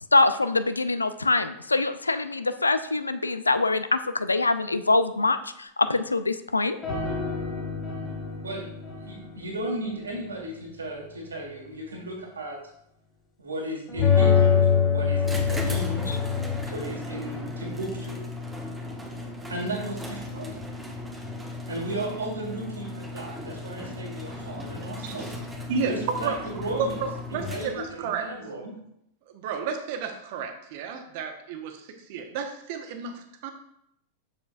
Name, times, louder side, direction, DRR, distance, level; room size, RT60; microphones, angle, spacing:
voice 1, 0.1-6.8 16.1-16.2, left 3 dB, 85° left, 12 dB, 0.4 m, -24 dB
sound 1, 6.8-9.5 9.9-10.0 13.9-16.7, left 6 dB, 25° left, 2.1 m, -24 dB
voice 2, 9.0-12.6 13.4-14.5 14.9-16.0 16.7-18.2 19.5-20.6 21.7-25.4 25.8-28.8, right 1 dB, 80° right, 0 dB, 1.6 m, -35 dB
sound 2, 15.2-28.0, left 2 dB, 5° right, 1.2 m, -37 dB
voice 3, 24.8-25.3 25.7-26.4 26.8-28.3 29.3-33.5, right 5 dB, 55° right, 5 dB, 1.0 m, -32 dB
7.0 x 6.7 x 2.5 m, 0.75 s
figure-of-eight pair, 90°, 0 cm